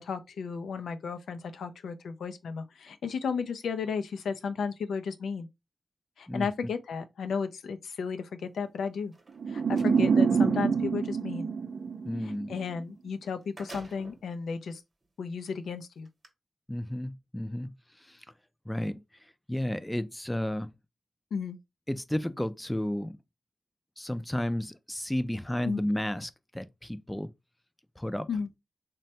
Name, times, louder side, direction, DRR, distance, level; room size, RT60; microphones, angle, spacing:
voice 1, 0.0-5.5 6.2-9.1 9.5-11.5 12.2-14.8 15.2-16.1 21.3-21.6 25.6-25.8 28.3-28.5, left 5 dB, 90° left, 0.3 m, -34 dB
sound 1, 9.0-10.0 12.8-12.9 13.2-14.3 15.0-15.1 16.0-16.3, right 2 dB, 45° right, 0.9 m, -48 dB
sound 2, 9.4-12.6, right 5 dB, 70° right, 0.4 m, -26 dB
voice 2, 12.1-12.5 16.7-18.2 18.7-19.0 19.5-20.7 21.9-23.2 24.0-27.3 28.0-28.3, left 1 dB, 10° left, 0.3 m, -32 dB
3.1 x 2.2 x 2.7 m
cardioid pair, 60°, 0 cm